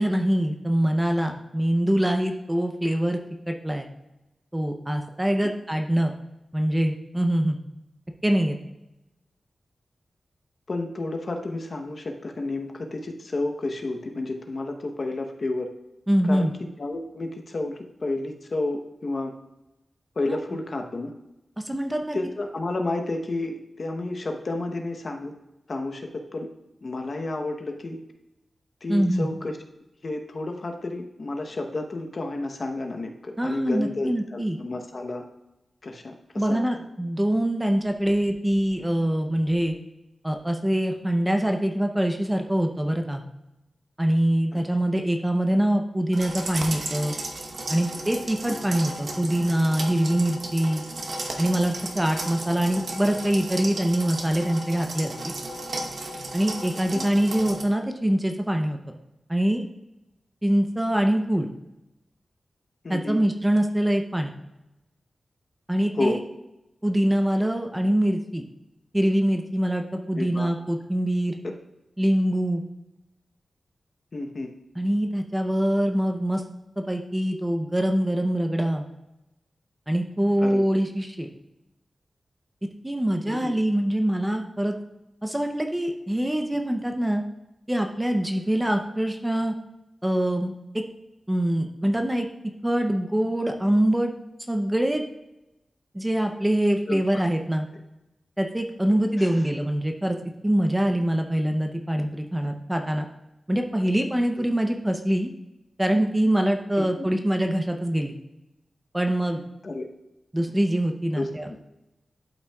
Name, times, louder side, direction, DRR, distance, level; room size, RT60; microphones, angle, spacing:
voice 1, 0.0-3.2 3.5-3.9 4.5-6.1 6.5-7.6 8.2-8.6 16.1-16.5 20.3-20.4 21.6-22.2 28.9-29.3 33.4-34.6 36.4-39.7 40.2-43.2 44.0-47.1 47.7-50.8 51.4-55.3 56.3-58.9 59.3-59.7 60.4-61.5 62.9-64.3 65.7-66.2 66.8-68.4 68.9-71.4 72.0-72.6 74.8-76.4 76.8-78.8 79.9-81.3 82.8-84.7 85.2-87.2 87.7-89.5 90.0-90.5 91.3-92.3 92.6-94.1 94.5-95.0 95.9-97.7 98.4-100.2 100.4-103.1 103.5-105.3 105.8-108.2 108.9-109.4 110.3-111.5, right 1 dB, 10° right, 4 dB, 0.6 m, -24 dB
voice 2, 10.7-15.7 16.3-16.5 16.8-19.3 20.2-21.1 22.1-25.3 25.7-26.5 26.8-28.0 28.8-29.6 30.0-35.2 35.8-36.7 44.5-44.6 56.9-57.0 62.8-63.2 66.0-66.2 70.2-70.5 71.4-71.5 74.1-74.5 80.4-80.6 83.3-83.5 96.9-97.0 99.2-99.3 104.4-104.5 106.8-107.0 109.6-109.9 111.1-111.6, left 2 dB, 45° left, 3 dB, 0.8 m, -31 dB
sound 1, 46.1-57.6, right 2 dB, 55° right, 0.9 m, -34 dB
12.0 x 5.6 x 2.3 m, 0.96 s
wide cardioid pair, 150°, 0 cm